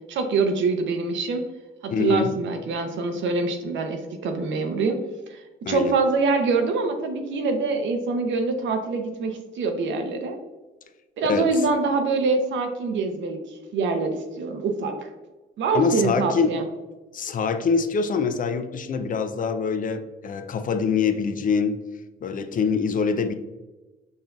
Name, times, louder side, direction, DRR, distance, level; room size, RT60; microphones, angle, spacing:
voice 1, 0.1-1.4 1.8-5.0 5.3-10.4 11.2-15.1 15.6-16.6, right 4 dB, 70° right, 6 dB, 0.7 m, -25 dB
voice 2, 1.9-2.3 5.7-5.9 11.2-11.5 15.7-16.5 17.1-21.8 22.2-23.3, left 5 dB, 45° left, 9 dB, 0.4 m, -24 dB
5.4 x 2.7 x 2.3 m, 1.2 s
cardioid pair, 90°, 20 cm